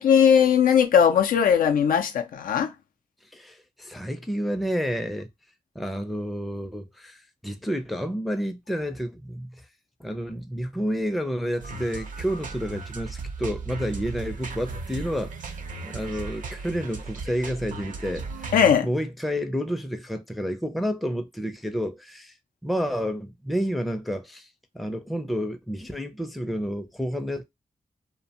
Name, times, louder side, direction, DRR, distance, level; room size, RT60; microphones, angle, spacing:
voice 1, 0.0-2.7 18.5-18.9, left 8 dB, 90° left, 0.4 m, -19 dB
voice 2, 3.3-5.3 5.8-9.6 10.0-15.3 15.8-18.5 18.8-22.3 22.6-24.5 24.7-27.4, equal, ahead, 0.4 m, -30 dB
sound 1, 11.6-18.7, right 4 dB, 70° right, 0.6 m, -36 dB
2.5 x 2.1 x 2.7 m
cardioid pair, 70°, 14 cm